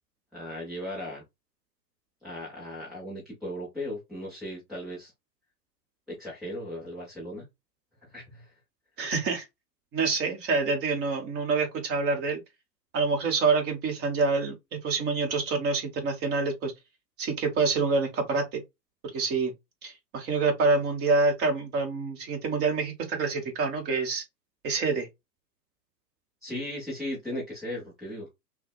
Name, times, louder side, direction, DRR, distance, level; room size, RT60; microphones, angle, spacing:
voice 1, 0.3-1.2 2.2-5.1 6.1-7.4 8.0-8.5 26.4-28.3, left 1 dB, ahead, 0.4 m, -37 dB
voice 2, 9.0-9.5 9.9-12.4 12.9-16.7 17.2-18.6 19.1-19.5 19.8-24.2 24.6-25.1, right 4 dB, 20° right, 1.0 m, -27 dB
5.9 x 2.1 x 2.2 m
hypercardioid pair, 120°, 50 cm